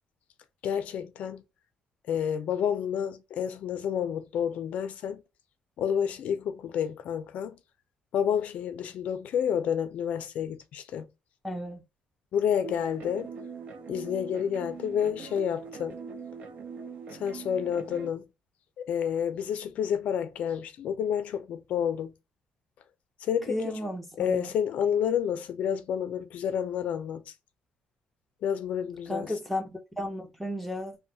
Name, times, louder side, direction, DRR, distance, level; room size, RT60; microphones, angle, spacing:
voice 1, 0.6-1.4 2.1-5.2 5.8-7.6 8.1-11.1 12.3-13.3 13.9-16.0 17.1-18.2 18.8-22.1 23.2-23.8 24.2-27.3 28.4-29.3, left 8 dB, 65° left, 0.4 m, -29 dB
voice 2, 11.4-11.8 23.5-24.5 29.1-31.0, left 1 dB, ahead, 0.7 m, -34 dB
sound 1, 12.6-18.1, right 5 dB, 60° right, 0.6 m, -42 dB
3.0 x 2.1 x 2.7 m
cardioid pair, 125°, 3 cm